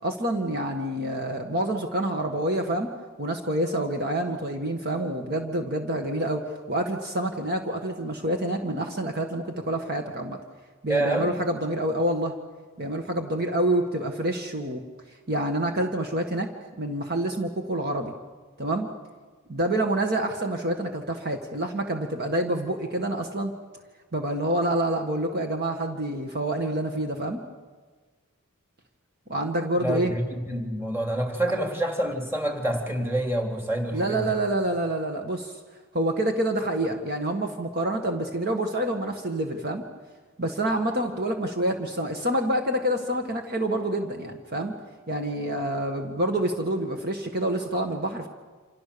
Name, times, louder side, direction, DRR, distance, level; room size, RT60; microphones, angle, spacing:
voice 1, 0.0-2.9 3.2-10.4 10.8-12.3 12.8-14.8 15.3-18.1 18.6-18.9 19.5-23.5 24.1-27.4 29.3-30.1 33.9-35.6 35.9-39.8 40.4-44.7 45.1-48.3, right 1 dB, 45° right, 4 dB, 1.8 m, -27 dB
voice 2, 10.9-11.3 29.8-34.4, right 1 dB, 10° right, 3 dB, 3.1 m, -27 dB
28.0 x 27.0 x 7.0 m, 1.4 s
head